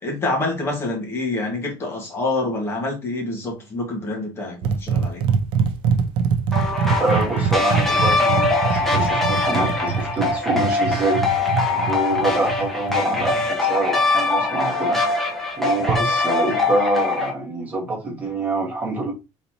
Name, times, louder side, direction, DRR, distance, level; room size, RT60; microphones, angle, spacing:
voice 1, 0.0-5.2, left 2 dB, 25° left, 1.6 m, -26 dB
sound 1, 4.6-13.4 15.8-16.2, right 6 dB, 60° right, 0.5 m, -24 dB
sound 2, 6.5-17.3, left 3 dB, 5° left, 1.0 m, -22 dB
voice 2, 7.0-11.2 11.7-15.0 15.6-19.1, right 2 dB, 15° right, 1.7 m, -25 dB
4.1 x 4.1 x 2.8 m
cardioid pair, 170°, 10 cm